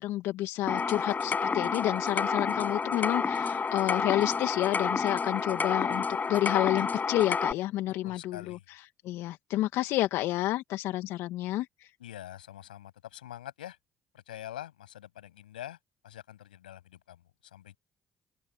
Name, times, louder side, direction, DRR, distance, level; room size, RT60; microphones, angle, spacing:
voice 1, 0.0-11.9, left 15 dB, 70° left, 1.9 m, -30 dB
sound 1, 0.7-7.5, left 5 dB, 35° left, 6.9 m, -30 dB
voice 2, 8.0-8.6 12.0-13.8 14.3-15.8 16.0-17.8, left 12 dB, 90° left, 7.4 m, -45 dB
hypercardioid pair, 50°, 5 cm